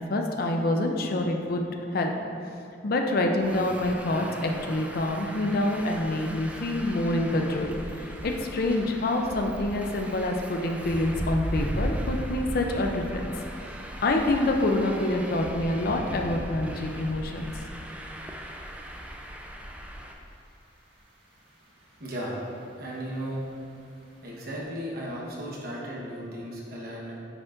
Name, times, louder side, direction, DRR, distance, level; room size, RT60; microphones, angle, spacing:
voice 1, 0.0-2.1 2.8-7.7 8.2-13.3 14.0-17.5, left 1 dB, 55° left, 3 dB, 0.5 m, -26 dB
Traffic noise roadway noise, 3.4-20.1, equal, 10° right, 0.4 m, -40 dB
sound 1, 5.5-24.6, equal, 85° right, 1.5 m, -41 dB
voice 2, 22.0-22.4 22.8-23.5 24.2-27.2, equal, 60° right, -4 dB, 1.1 m, -35 dB
9.6 x 5.0 x 2.5 m, 2.7 s
head